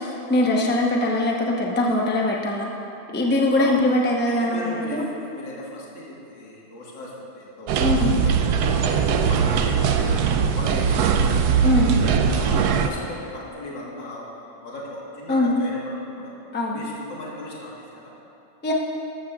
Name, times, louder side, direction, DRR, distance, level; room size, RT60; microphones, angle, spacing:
voice 1, 0.0-2.7 3.1-5.1 7.8-8.1 11.6-11.9 15.3-15.5 16.5-16.9 18.6-18.7, left 1 dB, 15° left, -1 dB, 0.4 m, -22 dB
voice 2, 4.4-8.3 8.8-11.3 11.7-16.3 16.7-18.1, left 1 dB, 70° left, -5 dB, 2.3 m, -37 dB
sound 1, 7.7-12.9, right 6 dB, 70° right, 0.9 m, -20 dB
13.5 x 13.0 x 2.4 m, 2.9 s
omnidirectional pair, 2.1 m